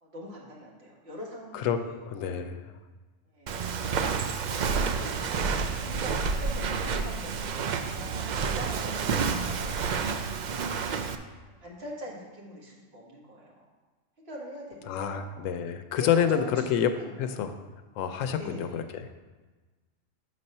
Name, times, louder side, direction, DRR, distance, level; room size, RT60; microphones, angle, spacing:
voice 1, 0.0-2.4 3.3-3.7 4.9-5.2 5.7-10.4 11.6-13.6 14.2-15.3 15.9-17.1 18.3-18.8, equal, 55° right, -3 dB, 1.7 m, -43 dB
voice 2, 2.1-2.6 14.9-16.4 16.7-16.9 17.2-17.5 18.0-19.2, left 8 dB, 85° left, 9 dB, 0.9 m, -28 dB
Walk footsteps, 3.5-11.2, right 5 dB, 85° right, 0.4 m, -29 dB
6.6 x 4.2 x 5.4 m, 1.3 s
omnidirectional pair, 1.3 m